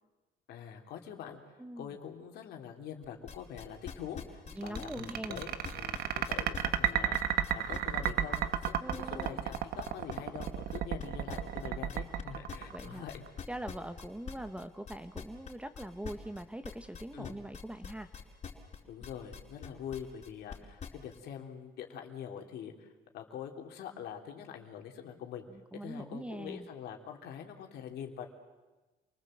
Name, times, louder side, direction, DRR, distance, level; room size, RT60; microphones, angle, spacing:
voice 1, 0.5-1.4 1.8-13.3 17.1-17.3 18.9-25.5 25.8-28.3, left 8 dB, 75° left, 3 dB, 3.2 m, -44 dB
voice 2, 1.6-1.9 4.5-5.4 8.8-9.4 11.6-11.8 12.7-13.1 13.5-18.2 25.5-26.7, right 1 dB, 5° right, 10 dB, 1.2 m, -42 dB
sound 1, 3.0-21.2, left 7 dB, 45° left, 4.9 m, -44 dB
sound 2, 4.6-13.3, right 10 dB, 65° right, 1.3 m, -32 dB
28.0 x 20.0 x 7.8 m, 1.2 s
cardioid pair, 110°, 17 cm